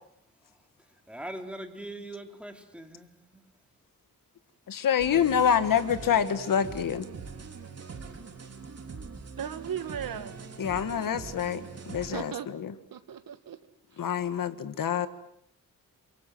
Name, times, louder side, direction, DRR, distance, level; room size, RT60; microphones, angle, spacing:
voice 1, 1.1-3.4, right 1 dB, 5° right, 4 dB, 3.1 m, -41 dB
voice 2, 4.7-7.1 10.6-12.7 14.0-15.1, left 8 dB, 70° left, 11 dB, 1.7 m, -26 dB
sound 1, 5.0-12.1, right 5 dB, 45° right, 3.7 m, -42 dB
voice 3, 9.4-10.3 12.1-12.5 12.9-13.6, right 8 dB, 75° right, 9 dB, 2.3 m, -36 dB
29.5 x 23.0 x 7.8 m, 0.73 s
wide cardioid pair, 145°, 35 cm